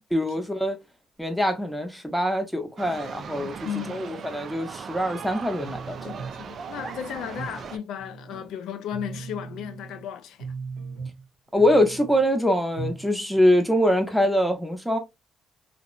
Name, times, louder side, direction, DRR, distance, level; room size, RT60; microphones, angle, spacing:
voice 1, 0.1-0.8 1.2-3.5 3.9-5.9 11.5-15.0, equal, ahead, 0.6 m, -23 dB
sound 1, 2.8-7.8, right 6 dB, 55° right, 0.3 m, -38 dB
voice 2, 3.6-4.2 6.0-10.5, left 9 dB, 85° left, 0.3 m, -35 dB
sound 2, 5.6-6.4 6.8-7.6 8.0-8.5 8.9-10.1 10.4-11.3 11.5-12.3 12.8-13.1 13.3-13.4, right 5 dB, 85° right, 0.7 m, -38 dB
2.8 x 2.0 x 2.3 m
cardioid pair, 90°, 0 cm